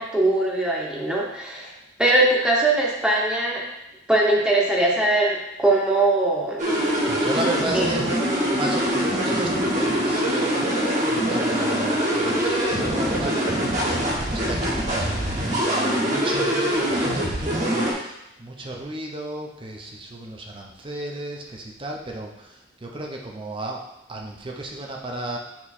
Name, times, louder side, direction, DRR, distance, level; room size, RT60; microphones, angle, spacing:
voice 1, 0.0-1.7 2.0-3.7 4.1-6.6 7.7-7.8, right 2 dB, 5° right, -3 dB, 1.0 m, -21 dB
sound 1, 6.6-17.9, equal, 45° right, 1.4 m, -23 dB
voice 2, 7.1-13.4 14.2-15.4 15.7-25.4, right 2 dB, 30° right, 0 dB, 0.8 m, -34 dB
7.2 x 3.2 x 4.3 m, 0.88 s
head